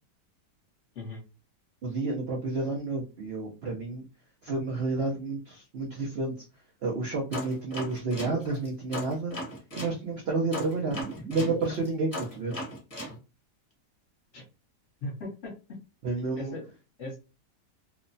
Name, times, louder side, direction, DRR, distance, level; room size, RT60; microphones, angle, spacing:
voice 1, 1.8-4.1 4.4-6.5 6.8-9.4 9.7-11.0 11.3-12.7 16.0-16.6, right 3 dB, 80° right, -1 dB, 0.5 m, -30 dB
sound 1, 7.3-10.0 10.5-13.2, equal, 25° left, 1.0 m, -37 dB
voice 2, 15.0-15.5 16.4-16.6 17.0-17.2, left 1 dB, 50° left, -2 dB, 1.1 m, -37 dB
3.0 x 2.1 x 2.5 m, 0.30 s
omnidirectional pair, 1.8 m